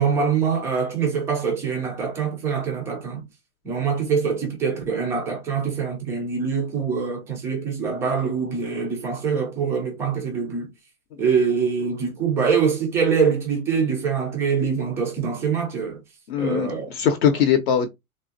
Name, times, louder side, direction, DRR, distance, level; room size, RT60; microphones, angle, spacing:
voice 1, 0.0-3.2 3.6-10.7 11.2-16.0 16.4-16.9, right 6 dB, 5° right, 0.3 m, -24 dB
voice 2, 16.3-17.9, left 8 dB, 45° left, 0.7 m, -21 dB
3.6 x 2.1 x 2.6 m
hypercardioid pair, 120°, 44 cm